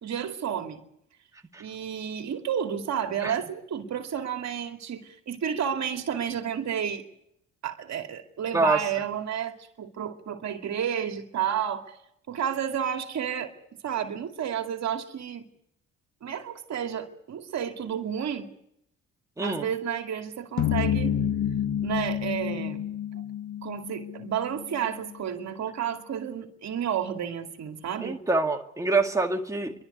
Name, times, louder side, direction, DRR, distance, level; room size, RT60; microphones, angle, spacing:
voice 1, 0.0-0.8 1.6-7.1 7.6-12.0 12.3-13.5 13.8-15.4 16.2-18.5 19.4-21.2 21.8-22.8 23.1-23.2 23.6-28.2, right 8 dB, 60° right, 5 dB, 2.5 m, -31 dB
voice 2, 19.4-19.7 28.0-29.7, right 3 dB, 10° right, 2 dB, 2.2 m, -25 dB
sound 1, 20.6-25.0, left 9 dB, 65° left, 1.7 m, -29 dB
27.5 x 12.5 x 9.5 m, 0.76 s
cardioid pair, 90°, 30 cm